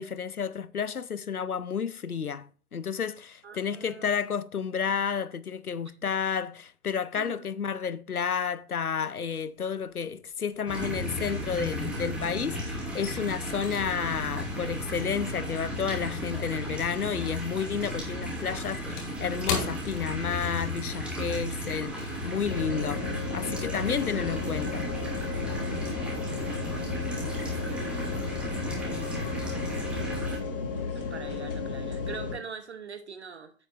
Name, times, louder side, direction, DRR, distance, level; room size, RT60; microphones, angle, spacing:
voice 1, 0.0-23.0 23.3-24.9, left 6 dB, 85° left, 0.8 m, -31 dB
voice 2, 3.4-4.1 7.1-7.4 30.9-33.5, right 6 dB, 50° right, 0.9 m, -42 dB
sound 1, 9.4-10.0 10.3-12.3 12.5-17.2 17.5-20.8 21.1-21.3 21.8-22.0, left 5 dB, 15° left, 1.2 m, -39 dB
sound 2, 10.7-30.4, left 1 dB, ahead, 0.9 m, -34 dB
sound 3, 22.4-32.3, left 4 dB, 40° left, 2.0 m, -34 dB
9.3 x 8.2 x 2.5 m
figure-of-eight pair, 140°, 43 cm